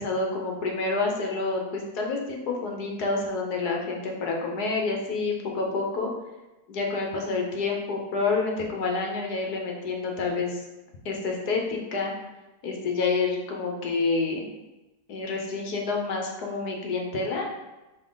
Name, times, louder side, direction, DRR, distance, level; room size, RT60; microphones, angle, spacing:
voice 1, 0.0-6.1 6.7-10.6 11.0-12.1 12.6-14.5 15.1-17.6, left 3 dB, 65° left, 0 dB, 1.5 m, -28 dB
5.7 x 4.6 x 3.9 m, 1.1 s
omnidirectional pair, 1.9 m